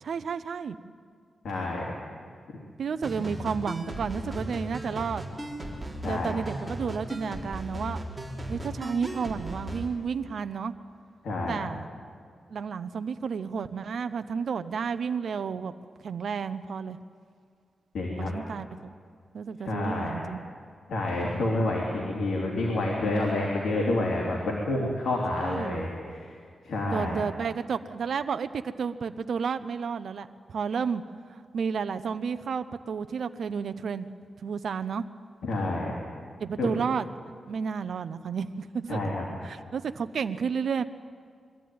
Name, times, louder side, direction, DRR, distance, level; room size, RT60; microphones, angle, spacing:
voice 1, 0.0-0.8 2.8-5.2 6.0-8.0 8.5-10.7 11.5-11.9 12.5-15.7 16.0-17.0 18.2-18.7 19.3-20.4 25.3-25.9 26.9-31.0 31.3-34.1 34.4-35.1 36.4-39.0 39.4-40.8, right 6 dB, 70° right, 11 dB, 0.7 m, -31 dB
voice 2, 1.4-1.8 6.0-6.3 11.2-11.6 17.9-18.3 19.6-20.2 20.9-26.3 26.6-27.2 35.4-35.9 36.6-36.7 38.9-39.3, left 2 dB, 80° left, -2 dB, 3.1 m, -28 dB
sound 1, 3.0-9.9, equal, 10° right, 3.6 m, -36 dB
22.0 x 13.5 x 9.4 m, 2.1 s
cardioid pair, 90°, 0 cm